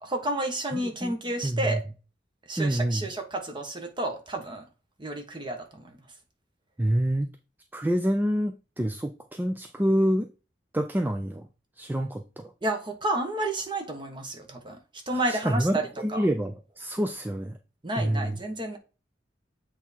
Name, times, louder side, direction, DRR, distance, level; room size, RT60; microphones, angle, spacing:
voice 1, 0.0-1.8 2.5-4.7 5.0-5.9 12.6-14.8 15.1-16.3 17.8-18.8, right 1 dB, 25° right, 1.3 m, -31 dB
voice 2, 0.7-1.2 1.4-1.8 2.6-3.1 6.8-7.3 7.7-10.3 10.7-11.5 11.8-12.5 15.3-17.6 18.0-18.4, equal, 10° right, 0.4 m, -27 dB
7.9 x 3.6 x 4.2 m
head